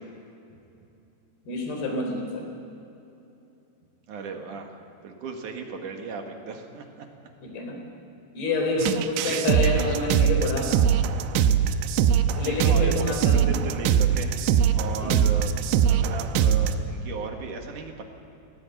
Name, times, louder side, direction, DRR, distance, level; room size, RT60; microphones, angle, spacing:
voice 1, 1.5-2.5 7.4-7.8 8.3-10.8 12.3-13.6 15.0-15.2, left 2 dB, 65° left, 2 dB, 5.6 m, -28 dB
voice 2, 4.1-7.3 9.3-10.2 12.4-14.4 14.7-15.6 15.9-18.0, right 5 dB, 60° right, 3 dB, 2.7 m, -36 dB
sound 1, 8.8-16.7, right 8 dB, 85° right, 3.0 m, -22 dB
19.0 x 18.0 x 8.5 m, 2.9 s
omnidirectional pair, 4.9 m